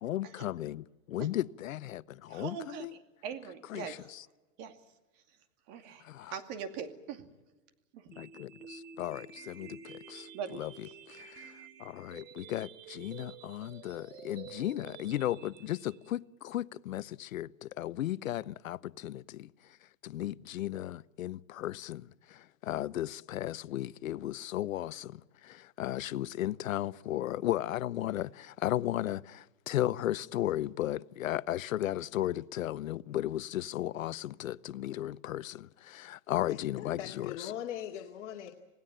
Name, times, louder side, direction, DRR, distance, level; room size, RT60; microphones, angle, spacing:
voice 1, 0.0-2.9 3.7-4.2 6.0-6.4 8.2-11.5 11.8-19.5 20.0-37.5, left 13 dB, 80° left, 0.8 m, -35 dB
voice 2, 2.3-4.1 4.6-4.8 5.7-7.3 7.9-8.0 10.3-10.6, right 7 dB, 35° right, 2.4 m, -42 dB
sound 1, 8.1-16.1, right 7 dB, 70° right, 3.2 m, -50 dB
voice 3, 36.5-38.5, left 10 dB, 60° left, 2.3 m, -40 dB
27.5 x 18.0 x 9.1 m
hypercardioid pair, 150°, 40 cm